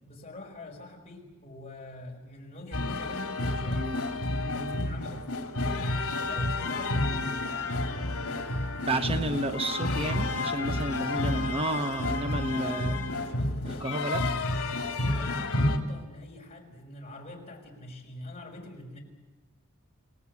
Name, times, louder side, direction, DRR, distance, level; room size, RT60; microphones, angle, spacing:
voice 1, 0.0-4.0 4.4-8.6 12.3-14.1 14.9-19.0, left 1 dB, 30° left, 0 dB, 5.3 m, -45 dB
sound 1, 2.7-15.8, left 2 dB, 75° left, 2.8 m, -30 dB
voice 2, 8.8-13.0 13.6-14.3, right 2 dB, 25° right, 7 dB, 0.9 m, -31 dB
27.5 x 18.5 x 8.4 m, 1.2 s
head